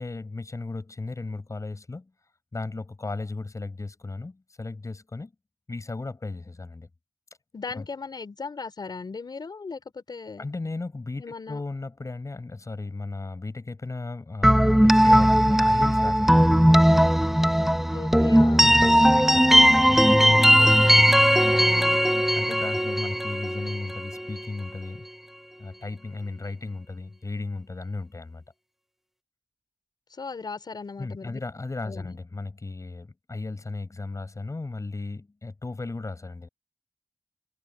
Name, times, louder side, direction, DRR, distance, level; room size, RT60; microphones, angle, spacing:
voice 1, 0.0-2.1 2.5-5.3 5.7-6.9 7.7-7.9 10.4-16.8 18.4-20.8 21.2-21.6 22.4-25.1 25.6-28.4 31.0-36.5, left 3 dB, 50° left, 5.7 m, -35 dB
voice 2, 7.5-10.5 11.2-11.6 17.9-18.7 20.6-21.1 21.5-22.0 30.1-31.4 31.8-32.2, left 4 dB, 80° left, 5.6 m, -37 dB
sound 1, 14.4-24.2, equal, 5° right, 1.1 m, -18 dB
wide cardioid pair, 80°, 7 cm